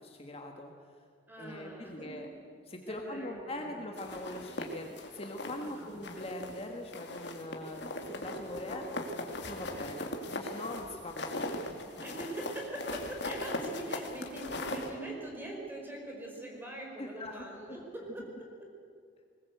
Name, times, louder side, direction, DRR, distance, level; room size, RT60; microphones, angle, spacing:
voice 1, 0.0-0.7 1.4-2.3 2.7-8.8 9.5-11.9 17.0-17.8, left 1 dB, 35° left, 3 dB, 1.7 m, -42 dB
voice 2, 1.3-2.4 2.9-3.9 5.6-5.9 8.5-9.9 12.0-18.5, right 1 dB, 10° right, 0 dB, 5.1 m, -43 dB
sound 1, 4.0-5.7 6.0-6.6 6.9-14.9, left 2 dB, 65° left, 2.4 m, -39 dB
21.0 x 20.0 x 8.1 m, 2.3 s
head